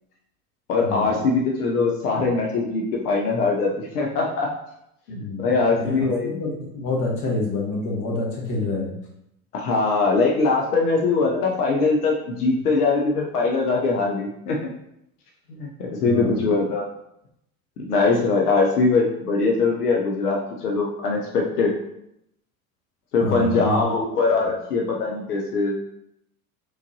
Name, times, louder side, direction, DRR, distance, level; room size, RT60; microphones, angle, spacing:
voice 1, 0.7-4.5 5.1-6.4 9.5-14.7 15.5-16.9 17.9-21.7 23.1-25.8, left 3 dB, 90° left, -1 dB, 0.6 m, -22 dB
voice 2, 5.1-8.9 16.0-16.4 23.2-23.8, left 2 dB, 45° left, -1 dB, 1.2 m, -27 dB
3.5 x 3.1 x 2.6 m, 0.78 s
hypercardioid pair, 75°, 44 cm